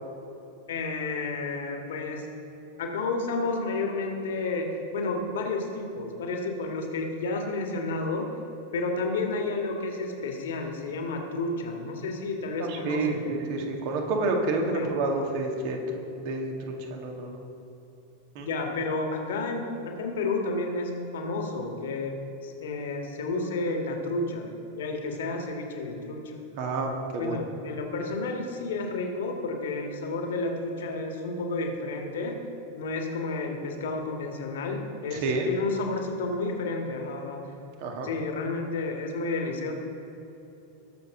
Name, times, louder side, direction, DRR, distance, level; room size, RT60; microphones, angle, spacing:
voice 1, 0.7-2.3 2.8-4.7 4.9-8.3 8.7-13.2 14.7-14.9 18.4-22.1 22.4-26.4 27.2-32.4 32.7-37.4 38.0-39.7, left 3 dB, 60° left, 2 dB, 1.8 m, -31 dB
voice 2, 12.6-17.4 18.4-18.5 26.6-27.4 35.1-35.5 37.8-38.1, right 2 dB, 45° right, 2 dB, 1.8 m, -29 dB
20.5 x 7.0 x 3.8 m, 3.0 s
figure-of-eight pair, 90°, 0 cm